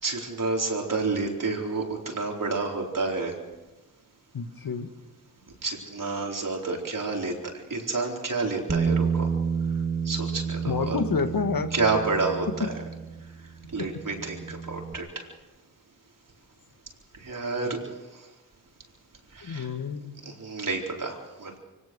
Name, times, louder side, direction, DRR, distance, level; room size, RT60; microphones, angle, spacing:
voice 1, 0.0-3.3 5.6-7.3 7.7-9.3 10.0-11.0 11.7-12.7 13.7-15.2 17.2-17.8 19.3-19.7 20.2-21.6, right 3 dB, 60° right, 0 dB, 4.4 m, -29 dB
voice 2, 4.3-4.9 10.6-11.7 13.8-13.9 19.4-20.1, left 5 dB, 70° left, 8 dB, 1.7 m, -29 dB
Bass guitar, 8.7-14.9, right 5 dB, 30° right, 2.1 m, -30 dB
24.0 x 18.5 x 6.4 m, 1.1 s
cardioid pair, 60°, 37 cm